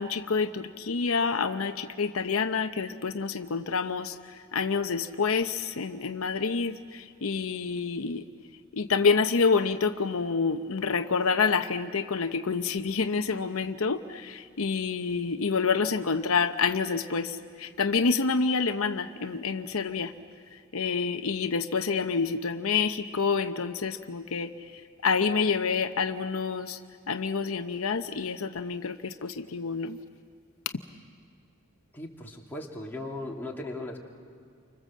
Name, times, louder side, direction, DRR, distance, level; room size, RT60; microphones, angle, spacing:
voice 1, 0.0-4.1 4.5-8.2 8.7-20.1 20.7-24.5 25.0-26.8 27.1-30.0, left 5 dB, 75° left, 8 dB, 0.8 m, -28 dB
voice 2, 31.9-34.0, left 2 dB, 10° left, -2 dB, 2.8 m, -37 dB
29.5 x 25.0 x 7.5 m, 2.2 s
head